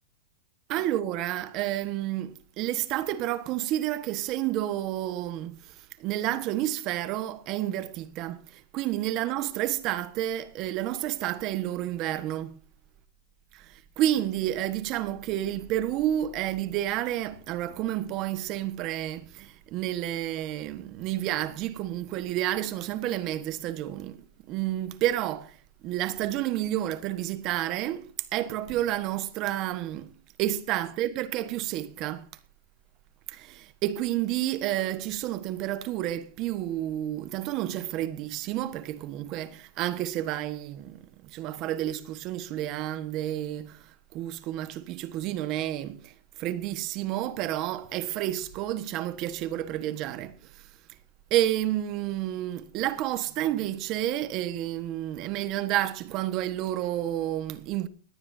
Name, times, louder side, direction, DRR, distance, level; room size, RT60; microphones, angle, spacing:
voice 1, 0.7-12.5 13.6-25.6 25.8-30.1 30.4-32.2 33.3-50.7 51.3-57.9, right 13 dB, 35° right, 1.4 m, -30 dB
19.0 x 17.5 x 2.7 m
supercardioid pair, 155°, 0 cm